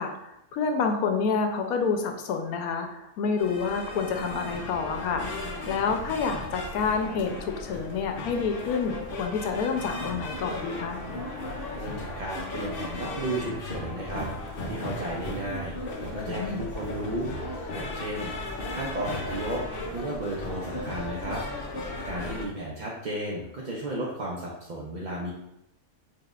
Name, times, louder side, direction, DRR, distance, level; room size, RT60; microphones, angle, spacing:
voice 1, 0.0-11.0 16.2-16.6, left 5 dB, 85° left, 5 dB, 1.1 m, -28 dB
sound 1, 3.4-22.5, left 2 dB, 55° left, 0.7 m, -36 dB
voice 2, 11.7-18.3 18.7-19.6 19.9-21.4 22.0-25.3, right 1 dB, 60° right, -4 dB, 0.4 m, -34 dB
5.1 x 2.8 x 2.4 m, 0.84 s
omnidirectional pair, 1.5 m